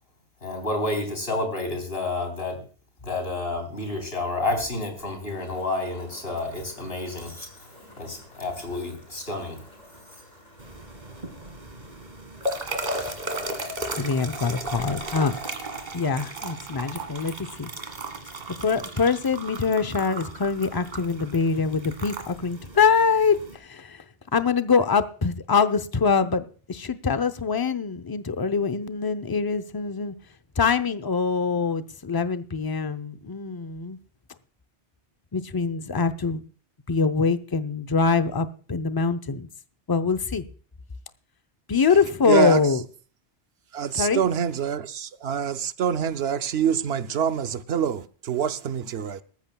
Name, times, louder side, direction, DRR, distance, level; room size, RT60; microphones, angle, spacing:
voice 1, 0.4-2.6 3.0-7.7 8.0-9.6 10.1-10.2, left 2 dB, 60° left, 3.9 m, -30 dB
sound 1, 5.2-16.3, left 1 dB, 40° left, 5.6 m, -51 dB
sound 2, 10.6-23.6, right 2 dB, 40° right, 1.8 m, -35 dB
voice 2, 14.0-15.4 15.9-17.7 18.6-23.4 23.6-24.0 24.3-30.1 30.6-34.0 35.3-36.4 36.9-39.5 39.9-40.4 41.7-42.8 43.9-44.2, left 5 dB, 25° left, 0.6 m, -24 dB
voice 3, 42.2-42.7 43.7-49.2, right 8 dB, 70° right, 0.9 m, -26 dB
19.0 x 14.5 x 2.3 m
omnidirectional pair, 1.1 m